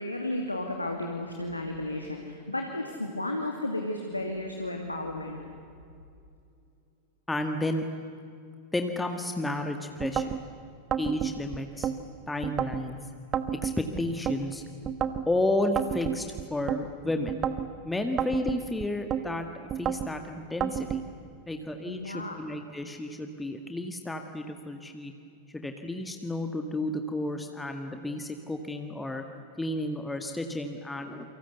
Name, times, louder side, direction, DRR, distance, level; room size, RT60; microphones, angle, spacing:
voice 1, 0.0-5.4 21.9-22.4, left 1 dB, 85° left, 2 dB, 2.5 m, -33 dB
voice 2, 7.3-7.8 8.7-10.4 11.0-11.9 12.3-13.0 13.6-14.6 15.3-17.4 17.8-21.0 21.5-25.1 25.5-29.2 29.6-31.3, left 1 dB, 10° left, 5 dB, 1.9 m, -32 dB
sound 1, 10.0-10.4 10.9-12.0 12.4-12.8 13.3-14.4 14.8-15.3 15.8-16.8 17.3-17.7 18.2-19.2 19.7-20.1 20.6-21.0, right 8 dB, 30° right, 1.3 m, -30 dB
28.5 x 25.0 x 8.2 m, 2.4 s
figure-of-eight pair, 90°, 0 cm